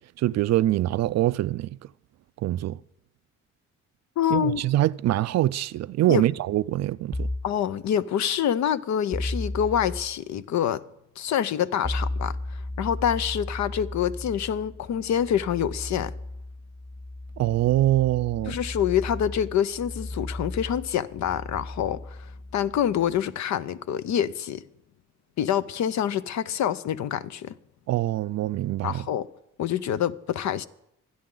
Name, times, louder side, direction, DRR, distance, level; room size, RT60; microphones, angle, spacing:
voice 1, 0.2-1.7 2.4-2.8 4.3-7.3 17.4-18.6 27.9-29.0, right 14 dB, 60° right, 0.4 m, -24 dB
voice 2, 4.2-4.6 6.1-6.3 7.4-10.8 11.2-16.1 18.5-24.6 25.4-27.6 28.8-29.3 29.6-30.7, left 9 dB, 65° left, 0.7 m, -26 dB
sound 1, 7.1-7.6 9.1-10.1 11.8-23.2, left 1 dB, 15° left, 1.0 m, -35 dB
26.5 x 9.7 x 3.9 m
cardioid pair, 90°, 30 cm